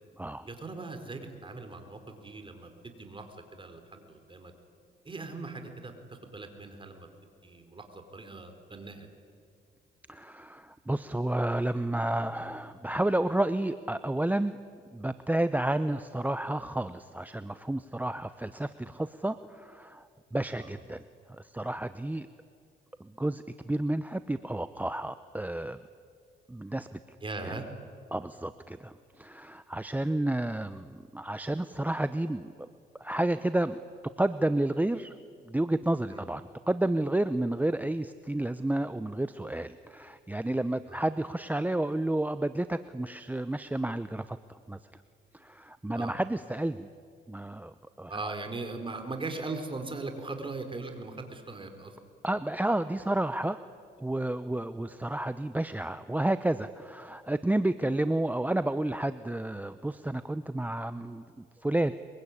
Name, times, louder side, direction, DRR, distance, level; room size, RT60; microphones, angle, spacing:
voice 1, 0.5-3.3 3.5-4.5 5.0-5.9 6.3-7.1 7.4-9.1 20.5-20.7 27.2-27.6 36.1-36.2 40.9-41.0 45.9-46.1 48.1-52.0, right 3 dB, 25° right, 6 dB, 4.5 m, -39 dB
voice 2, 10.1-14.6 14.9-21.0 21.3-22.3 23.0-25.8 26.5-27.0 27.4-27.5 28.1-32.7 33.0-33.8 34.2-35.1 35.4-44.8 45.3-46.9 47.3-48.3 52.2-53.6 54.0-61.9, right 1 dB, 10° right, 12 dB, 0.7 m, -31 dB
24.0 x 23.0 x 9.9 m, 2.4 s
cardioid pair, 90°, 20 cm